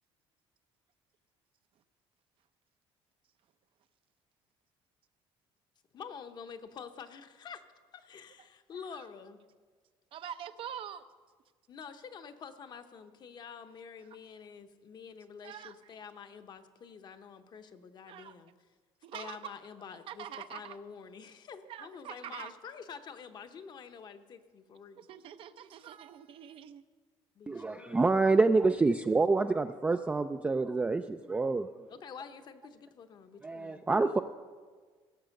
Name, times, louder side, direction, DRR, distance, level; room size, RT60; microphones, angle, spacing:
voice 1, 5.9-7.6 7.9-9.4 11.7-18.5 19.1-25.0 27.4-28.2 31.9-33.9, left 6 dB, 45° left, 8 dB, 0.9 m, -48 dB
voice 2, 10.1-11.0 15.4-15.7 18.1-18.4 19.0-19.5 20.1-20.8 21.6-22.5 25.0-26.8, right 9 dB, 55° right, 11 dB, 0.6 m, -44 dB
voice 3, 27.5-31.7 33.4-34.2, right 3 dB, 15° right, 7 dB, 0.3 m, -27 dB
17.0 x 6.7 x 6.4 m, 1.5 s
cardioid pair, 125°, 11 cm